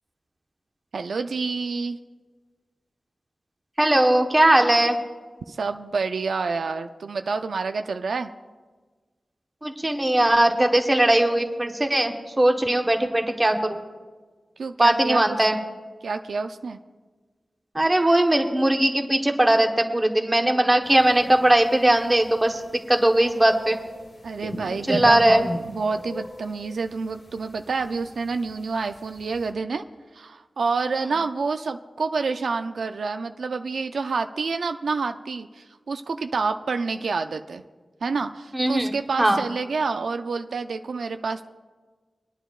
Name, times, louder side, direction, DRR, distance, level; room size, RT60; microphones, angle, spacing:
voice 1, 0.9-2.0 5.5-8.3 14.6-15.7 16.0-16.8 24.2-29.8 30.1-37.6 38.0-41.5, right 4 dB, 85° right, 7 dB, 0.4 m, -28 dB
voice 2, 3.8-5.0 9.6-13.8 14.8-15.6 17.7-22.6 22.9-23.8 24.9-25.5 38.5-38.9 39.2-39.4, right 1 dB, 20° right, 3 dB, 1.1 m, -19 dB
sound 1, 20.8-29.5, left 1 dB, 60° left, 3.0 m, -40 dB
24.5 x 10.0 x 2.4 m, 1.3 s
wide cardioid pair, 100°, 0 cm